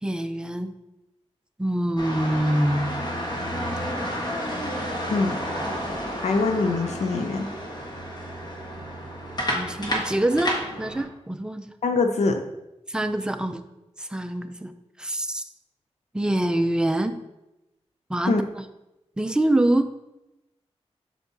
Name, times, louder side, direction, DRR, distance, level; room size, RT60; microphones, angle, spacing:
voice 1, 0.0-0.7 1.6-2.9 9.5-11.7 12.9-13.6 14.0-14.7 15.0-15.4 16.1-17.2 18.1-18.7 19.2-19.9, right 1 dB, 5° right, 8 dB, 0.4 m, -25 dB
sound 1, 2.0-11.0, equal, 40° left, 1.3 m, -31 dB
voice 2, 6.2-7.5 11.8-12.4 18.3-18.4, left 3 dB, 85° left, 5 dB, 0.5 m, -23 dB
8.1 x 5.9 x 2.7 m, 0.93 s
wide cardioid pair, 160°, 11 cm